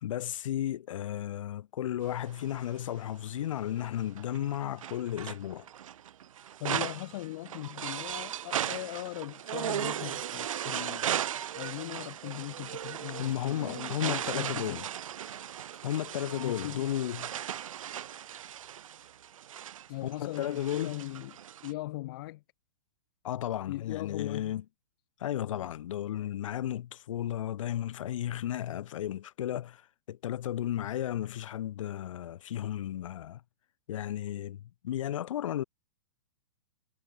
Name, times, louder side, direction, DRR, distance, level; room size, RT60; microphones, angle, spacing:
voice 1, 0.0-5.7 13.2-14.8 15.8-17.3 20.0-21.0 23.2-24.6 25.2-29.8 30.1-33.4 33.9-35.6, left 11 dB, 75° left, 0.5 m, -34 dB
sound 1, 2.0-3.2 3.8-21.7, right 10 dB, 90° right, 0.5 m, -37 dB
voice 2, 6.6-11.1 11.5-14.8 16.4-16.9 19.9-21.4 21.6-22.4 23.7-24.5, left 18 dB, 45° left, 1.7 m, -39 dB
hypercardioid pair, 155°, 17 cm